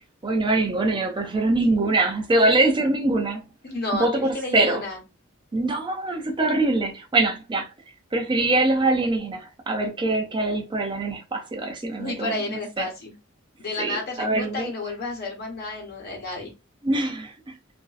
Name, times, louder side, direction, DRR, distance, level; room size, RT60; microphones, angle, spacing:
voice 1, 0.2-3.4 3.9-4.8 5.5-7.7 8.1-12.9 13.8-14.7 16.8-17.6, right 2 dB, 25° right, 0.4 m, -23 dB
voice 2, 3.6-5.0 12.0-13.1 13.6-16.5, left 2 dB, 50° left, 1.1 m, -31 dB
3.0 x 2.5 x 2.3 m
head